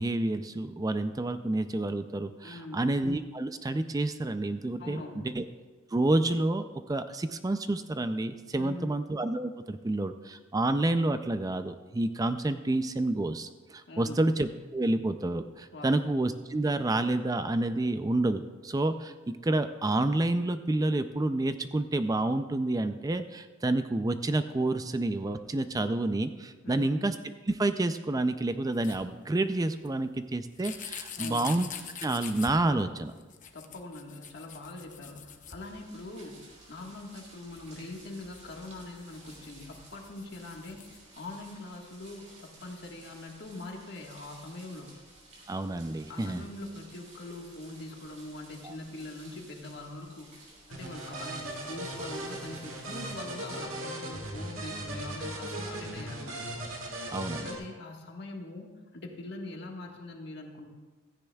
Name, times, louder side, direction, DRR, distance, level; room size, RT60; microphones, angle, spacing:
voice 1, 0.0-5.4 5.9-31.7 32.0-33.1 45.5-46.4 48.6-48.7 57.1-57.5, right 2 dB, 20° right, 10 dB, 0.4 m, -29 dB
voice 2, 2.4-2.9 4.8-5.4 8.6-9.0 13.9-14.3 15.7-16.1 26.6-27.0 31.2-31.5 33.5-40.8 41.1-45.0 46.1-50.4 50.7-56.5 57.4-60.7, left 2 dB, 55° left, 1 dB, 1.6 m, -43 dB
sound 1, 28.7-29.0 29.8-29.9 30.6-32.5 33.1-36.2 36.5-36.6 36.8-36.9 37.5-41.0, left 8 dB, 40° left, 0.8 m, -45 dB
sound 2, 35.6-53.6, right 2 dB, 35° right, 3.7 m, -55 dB
sound 3, 50.7-57.6, right 1 dB, 80° right, 2.0 m, -38 dB
16.0 x 14.0 x 2.3 m, 1.3 s
head